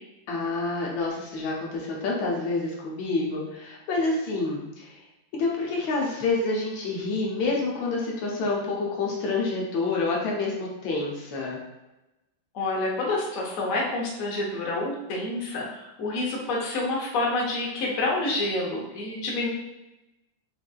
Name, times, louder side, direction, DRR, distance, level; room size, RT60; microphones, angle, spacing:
voice 1, 0.3-5.0 5.3-11.6, left 3 dB, 75° left, -2 dB, 1.4 m, -28 dB
voice 2, 12.5-19.5, left 2 dB, 55° left, -3 dB, 1.0 m, -28 dB
5.1 x 2.5 x 2.3 m, 0.97 s
omnidirectional pair, 2.2 m